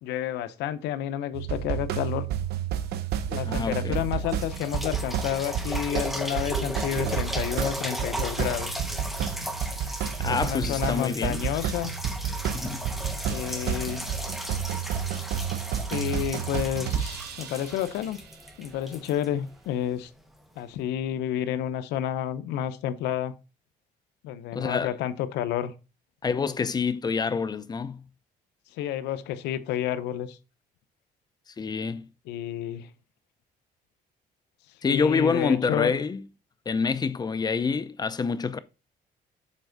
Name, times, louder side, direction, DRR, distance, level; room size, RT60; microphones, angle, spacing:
voice 1, 0.0-2.3 3.3-8.8 10.2-11.9 13.3-14.0 15.9-18.2 18.6-20.1 20.6-23.3 24.2-25.7 28.8-30.4 32.3-32.9 34.8-35.9, left 11 dB, 85° left, 0.8 m, -30 dB
sound 1, 1.3-18.0, right 8 dB, 75° right, 0.8 m, -31 dB
voice 2, 3.5-4.0 10.2-11.4 12.5-12.8 24.5-24.9 26.2-28.0 31.6-32.1 34.8-36.2 36.7-38.6, left 5 dB, 25° left, 0.6 m, -27 dB
sound 2, 4.2-20.0 20.6-20.7, equal, ahead, 1.1 m, -36 dB
7.4 x 4.4 x 3.9 m
cardioid pair, 110°, 17 cm